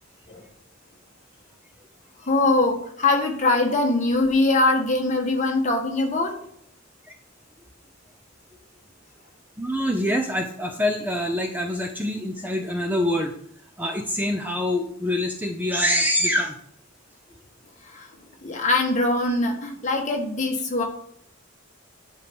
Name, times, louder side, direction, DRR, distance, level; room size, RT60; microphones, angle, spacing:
voice 1, 2.3-6.4 17.8-18.1 18.4-20.8, left 2 dB, 35° left, 1 dB, 1.6 m, -22 dB
voice 2, 9.6-13.3 13.8-16.6, left 1 dB, 10° right, 3 dB, 0.6 m, -25 dB
10.0 x 4.5 x 5.4 m, 0.67 s
head